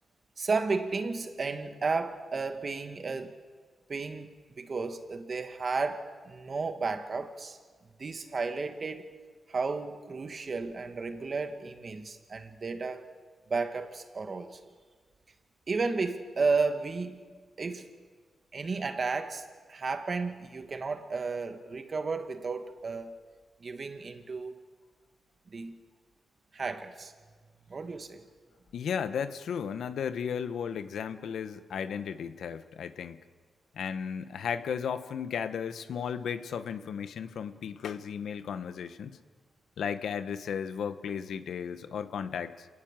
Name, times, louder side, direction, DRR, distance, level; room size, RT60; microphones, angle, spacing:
voice 1, 0.4-3.3 3.9-4.3 4.6-7.6 8.0-9.1 9.5-13.1 13.5-14.6 15.7-17.2 17.6-17.9 18.5-23.2 23.6-24.7 25.5-25.8 26.5-27.1 27.7-28.2, right 4 dB, 45° right, 7 dB, 2.0 m, -33 dB
voice 2, 28.7-33.2 33.7-39.2 39.8-42.7, left 7 dB, 80° left, 11 dB, 1.1 m, -35 dB
27.5 x 18.5 x 7.6 m, 1.5 s
cardioid pair, 90°, 0 cm